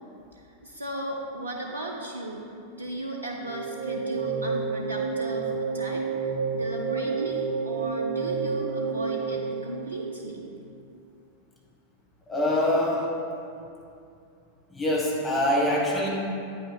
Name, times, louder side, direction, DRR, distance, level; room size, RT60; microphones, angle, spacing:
voice 1, 0.4-2.5 2.7-6.1 6.5-10.5, right 1 dB, 75° right, 0 dB, 0.4 m, -35 dB
sound 1, 3.4-10.7, right 5 dB, 60° right, 0.9 m, -30 dB
voice 2, 12.3-13.1 14.7-16.1, left 1 dB, 10° left, -4 dB, 1.4 m, -24 dB
8.5 x 5.8 x 2.3 m, 2.5 s
figure-of-eight pair, 90°, 0 cm